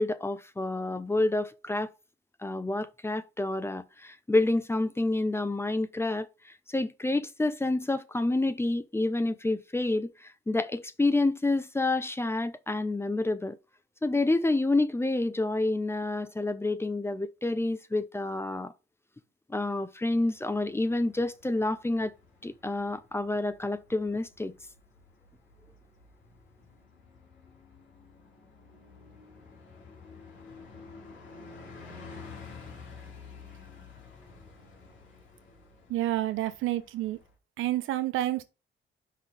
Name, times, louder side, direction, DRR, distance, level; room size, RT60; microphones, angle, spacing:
voice 1, 0.0-1.9 2.4-13.6 14.0-18.7 19.5-22.1 22.4-24.5, left 2 dB, 10° left, 0.7 m, -28 dB
Bus, 20.3-37.3, left 4 dB, 70° left, 2.6 m, -51 dB
voice 2, 35.9-37.2 37.6-38.4, right 14 dB, 85° right, 0.8 m, -29 dB
5.6 x 3.9 x 4.8 m
cardioid pair, 90°, 20 cm